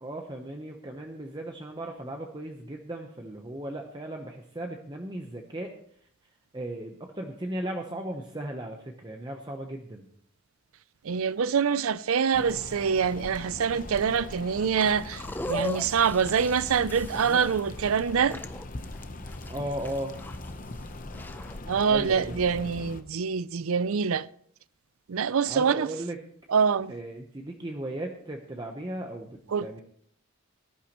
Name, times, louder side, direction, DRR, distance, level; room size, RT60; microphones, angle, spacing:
voice 1, 0.0-5.7 6.5-10.1 17.2-17.4 19.5-20.2 21.9-22.7 25.5-26.2 26.9-29.8, right 1 dB, 20° right, 0.9 m, -36 dB
voice 2, 11.0-18.4 21.7-24.3 25.1-25.9 26.5-26.9 29.5-29.8, right 6 dB, 80° right, 0.5 m, -25 dB
sound 1, 12.3-23.0, left 2 dB, 40° left, 0.8 m, -41 dB
sound 2, 14.8-21.6, left 1 dB, 10° left, 0.5 m, -39 dB
18.5 x 11.5 x 3.0 m
head